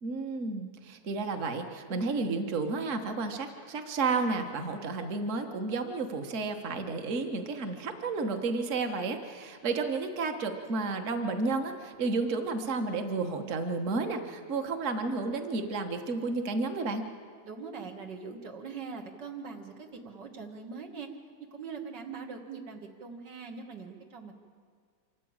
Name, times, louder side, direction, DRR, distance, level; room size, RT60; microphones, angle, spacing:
voice 1, 0.0-17.0, right 3 dB, 45° right, 6 dB, 1.6 m, -32 dB
voice 2, 17.4-21.1 21.4-24.3, right 5 dB, 85° right, 4 dB, 2.3 m, -42 dB
25.5 x 14.0 x 8.8 m, 2.1 s
omnidirectional pair, 1.8 m